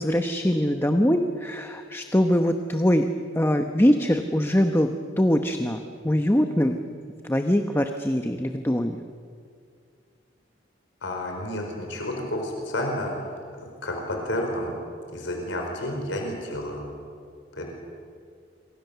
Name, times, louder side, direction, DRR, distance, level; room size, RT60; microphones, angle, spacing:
voice 1, 0.0-3.1 3.3-6.8 7.2-9.0, equal, 15° left, 6 dB, 0.9 m, -23 dB
voice 2, 11.0-14.7 15.1-16.9 17.5-17.7, left 1 dB, 80° left, 1 dB, 4.6 m, -31 dB
27.5 x 24.0 x 6.9 m, 2.2 s
head